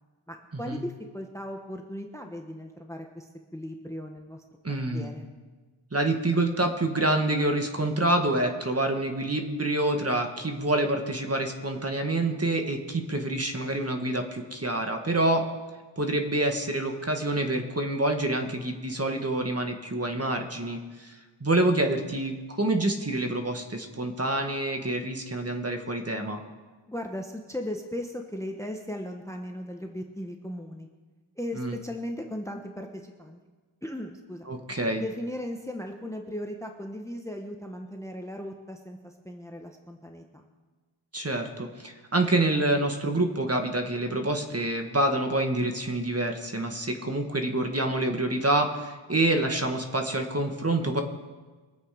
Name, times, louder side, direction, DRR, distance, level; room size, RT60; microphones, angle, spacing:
voice 1, 0.3-4.4 4.9-5.3 26.9-30.9 31.4-33.4 33.8-34.5 35.0-40.5, left 1 dB, 5° left, 4 dB, 1.0 m, -37 dB
voice 2, 4.6-5.1 5.9-15.4 16.0-26.4 31.5-31.8 34.5-35.0 41.1-51.0, right 2 dB, 30° right, 4 dB, 1.6 m, -27 dB
23.0 x 8.3 x 5.0 m, 1.3 s
wide cardioid pair, 75°, 49 cm